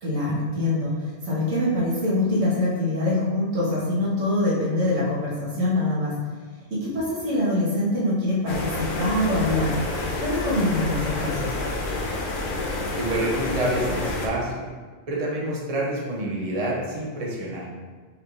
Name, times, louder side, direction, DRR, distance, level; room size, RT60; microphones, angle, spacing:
voice 1, 0.0-6.2 6.7-9.8 10.2-11.5, left 1 dB, 90° right, -8 dB, 1.8 m, -24 dB
sound 1, 8.5-14.3, left 2 dB, 80° left, 1.1 m, -29 dB
voice 2, 13.0-14.7 15.1-17.6, right 1 dB, 35° right, -4 dB, 0.8 m, -27 dB
5.3 x 3.5 x 2.6 m, 1.5 s
omnidirectional pair, 1.3 m